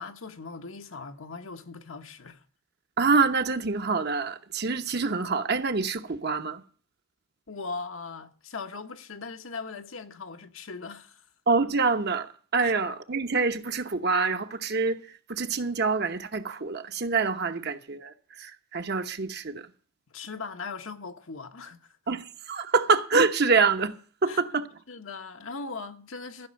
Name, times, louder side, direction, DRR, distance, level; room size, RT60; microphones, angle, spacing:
voice 1, 0.0-2.4 7.5-11.3 12.6-12.7 17.6-17.7 20.1-22.0 24.3-24.4 24.9-26.5, left 4 dB, 75° left, 1.2 m, -39 dB
voice 2, 3.0-6.6 11.5-15.0 15.3-19.7 22.1-23.9 24.2-24.7, right 4 dB, 55° right, 1.0 m, -26 dB
14.5 x 6.2 x 8.7 m
head